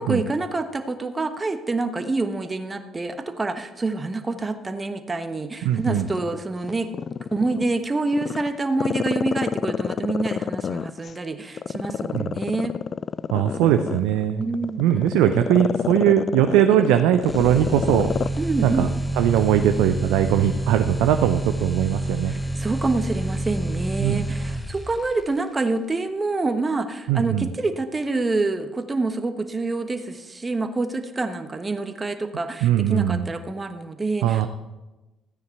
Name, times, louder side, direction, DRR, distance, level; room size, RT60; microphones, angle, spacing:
voice 1, 0.0-6.9 7.3-12.7 14.4-15.1 18.4-19.0 22.3-34.5, right 3 dB, 25° right, 8 dB, 1.1 m, -27 dB
voice 2, 5.6-6.1 12.1-12.3 13.3-14.4 14.8-18.1 18.6-18.9 19.2-22.3 24.0-24.2 27.1-27.5 32.6-33.2 34.2-34.5, right 11 dB, 70° right, 7 dB, 0.5 m, -20 dB
Growling, 6.0-7.7 8.1-11.1 11.6-18.4 18.7-18.8, left 7 dB, 45° left, 0.3 m, -28 dB
sound 1, 17.2-25.2, right 1 dB, 15° left, 1.0 m, -28 dB
13.5 x 9.3 x 4.6 m, 1.1 s
hypercardioid pair, 50°, 0 cm